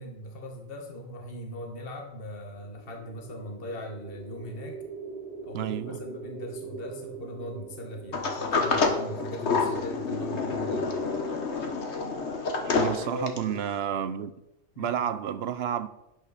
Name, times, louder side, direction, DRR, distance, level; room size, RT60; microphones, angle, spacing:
voice 1, 0.0-4.8 5.4-11.0 12.9-13.6 14.7-15.0, left 1 dB, 55° left, 1.6 m, -40 dB
sound 1, 2.4-10.6, right 4 dB, 5° right, 3.2 m, -43 dB
voice 2, 5.5-6.0 12.7-14.3 14.8-15.9, right 9 dB, 70° right, 0.9 m, -30 dB
Sliding door, 8.1-13.6, left 4 dB, 75° left, 1.6 m, -28 dB
11.5 x 8.8 x 4.2 m
omnidirectional pair, 1.2 m